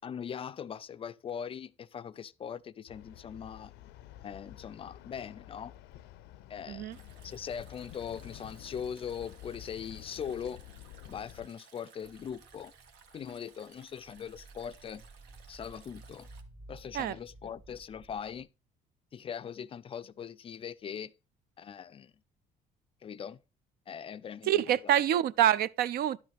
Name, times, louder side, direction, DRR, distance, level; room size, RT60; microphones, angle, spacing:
voice 1, 0.0-3.7 4.2-5.7 6.5-6.9 7.2-10.6 11.1-12.7 13.1-15.0 15.5-16.3 16.7-18.5 19.1-21.1 21.6-22.1 23.0-23.4 23.9-25.0, left 8 dB, 35° left, 0.3 m, -41 dB
sound 1, 2.9-11.5, left 13 dB, 90° left, 0.5 m, -50 dB
Stream, 6.9-16.4, right 6 dB, 85° right, 1.3 m, -59 dB
sound 2, 12.0-18.4, right 2 dB, 30° right, 2.1 m, -54 dB
voice 2, 24.5-26.2, right 11 dB, 65° right, 0.4 m, -26 dB
11.0 x 6.2 x 3.4 m
cardioid pair, 110°, 17 cm